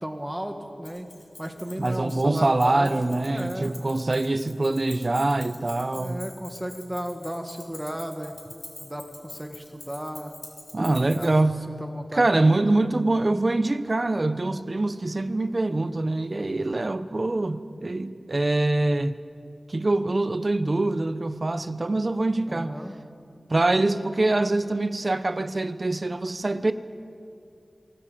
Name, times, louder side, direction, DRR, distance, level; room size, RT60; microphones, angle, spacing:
voice 1, 0.0-1.1 1.4-2.9 3.3-3.7 5.9-8.4 8.8-10.3 11.1-11.4 11.8-12.4 12.7-13.0 22.5-22.9, equal, 10° right, 4 dB, 1.9 m, -34 dB
Keys jangling, 0.8-11.5, left 2 dB, 60° left, 4.8 m, -45 dB
voice 2, 1.8-6.2 10.7-11.6 12.1-19.2 19.7-22.7 23.5-26.7, right 2 dB, 45° right, 12 dB, 0.9 m, -24 dB
27.5 x 22.5 x 5.2 m, 2.4 s
wide cardioid pair, 60°, 0 cm